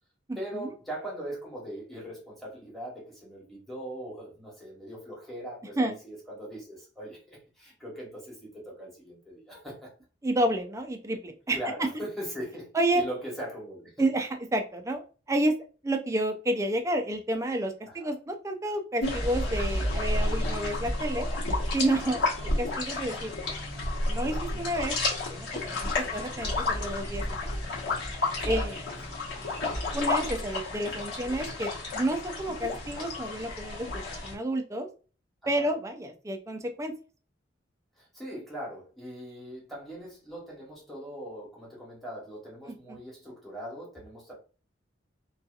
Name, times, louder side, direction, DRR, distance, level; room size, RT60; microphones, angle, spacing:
voice 1, 0.4-9.9 11.5-14.1 17.9-18.1 21.9-22.1 25.9-26.2 28.4-29.2 35.4-35.7 38.0-44.3, equal, ahead, -5 dB, 1.1 m, -41 dB
voice 2, 10.2-11.6 12.7-13.0 14.0-15.5 15.8-21.3 21.7-22.2 22.6-23.3 24.1-24.9 25.3-27.5 28.4-28.8 29.9-34.9 35.5-36.9 42.9-43.0, right 1 dB, 15° right, 5 dB, 0.4 m, -30 dB
sound 1, 19.0-34.3, left 2 dB, 65° left, 1.1 m, -31 dB
2.7 x 2.3 x 2.3 m, 0.35 s
head